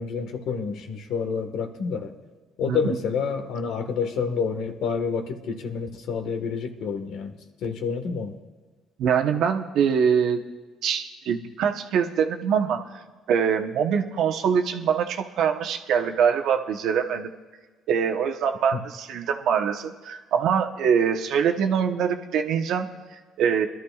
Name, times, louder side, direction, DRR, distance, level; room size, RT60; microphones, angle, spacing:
voice 1, 0.0-2.1 2.6-7.3 7.6-8.4 18.7-18.8, left 5 dB, 70° left, 6 dB, 1.4 m, -28 dB
voice 2, 9.0-10.4 10.8-13.0 13.3-17.3 17.9-23.7, right 7 dB, 70° right, 6 dB, 1.0 m, -24 dB
22.5 x 12.5 x 2.4 m, 1.4 s
cardioid pair, 95°, 0 cm